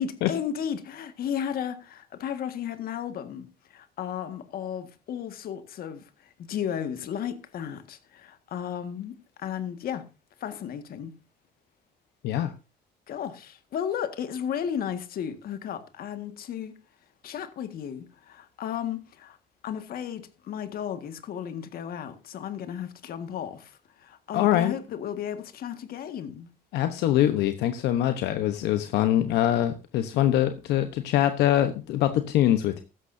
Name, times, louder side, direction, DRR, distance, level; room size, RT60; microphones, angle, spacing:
voice 1, 0.0-10.1 10.4-11.1 13.1-16.7 17.2-19.4 19.6-26.5, left 9 dB, 60° left, 1.8 m, -34 dB
voice 2, 24.3-24.7 26.7-32.8, left 12 dB, 80° left, 1.0 m, -23 dB
15.5 x 13.0 x 2.7 m
cardioid pair, 110°, 17 cm